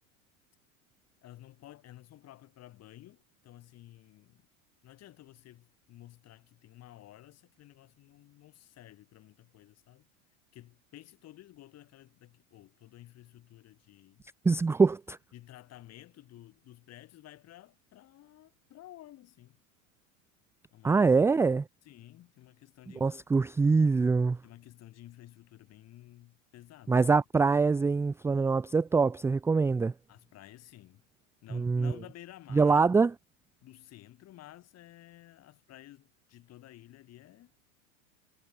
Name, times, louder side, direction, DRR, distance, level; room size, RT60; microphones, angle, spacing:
voice 1, 1.2-4.5 4.8-10.1 10.5-14.3 15.3-19.6 20.7-21.0 21.8-23.1 24.4-27.0 30.1-31.1 31.4-32.9 33.6-37.6, left 14 dB, 35° left, 6.9 m, -53 dB
voice 2, 14.4-15.2 20.8-21.7 23.0-24.4 26.9-29.9 31.5-31.9 32.5-33.1, right 4 dB, 5° right, 0.5 m, -24 dB
hypercardioid pair, 120°, 42 cm